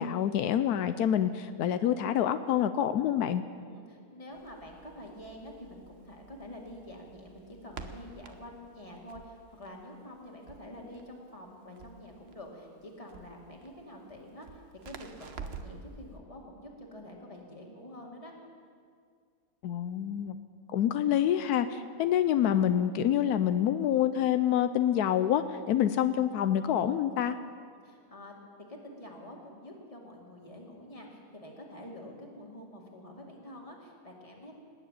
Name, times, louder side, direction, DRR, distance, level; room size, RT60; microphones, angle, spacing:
voice 1, 0.0-3.4 19.6-20.4 20.7-27.4, left 10 dB, 85° left, 11 dB, 1.1 m, -27 dB
voice 2, 3.6-18.3 25.6-25.7 27.8-28.3 28.6-34.5, left 1 dB, 20° left, 0 dB, 2.3 m, -47 dB
Crackle, 4.3-15.9, right 5 dB, 50° right, 1.0 m, -49 dB
20.0 x 7.5 x 9.0 m, 2.2 s
omnidirectional pair, 1.6 m